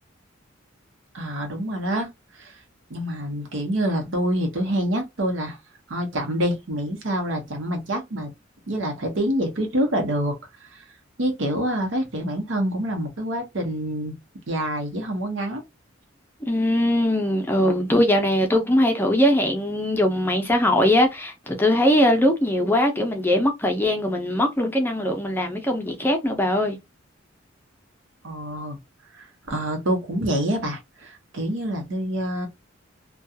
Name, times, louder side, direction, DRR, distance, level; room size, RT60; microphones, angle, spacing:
voice 1, 1.1-2.1 2.3-2.6 2.9-5.6 5.9-8.3 8.7-10.8 11.2-14.1 14.5-15.6 28.2-28.8 29.1-32.5, right 1 dB, 75° right, 0.8 m, -26 dB
voice 2, 16.5-26.8, left 1 dB, 10° left, 0.5 m, -21 dB
2.3 x 2.2 x 2.7 m
head